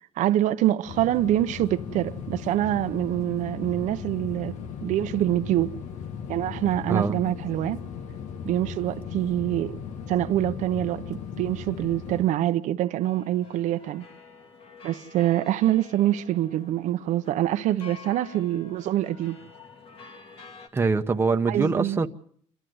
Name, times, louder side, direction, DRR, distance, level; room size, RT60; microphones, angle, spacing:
voice 1, 0.2-4.5 4.8-5.7 6.3-7.8 8.5-9.7 10.1-14.0 14.8-19.4 21.5-22.0, right 13 dB, 75° right, 0.9 m, -25 dB
sound 1, 0.9-12.2, left 7 dB, 70° left, 1.5 m, -37 dB
sound 2, 13.0-20.7, left 5 dB, 50° left, 2.6 m, -48 dB
voice 2, 20.7-22.1, right 4 dB, 20° right, 1.0 m, -23 dB
28.5 x 12.5 x 7.9 m
cardioid pair, 150°, 13 cm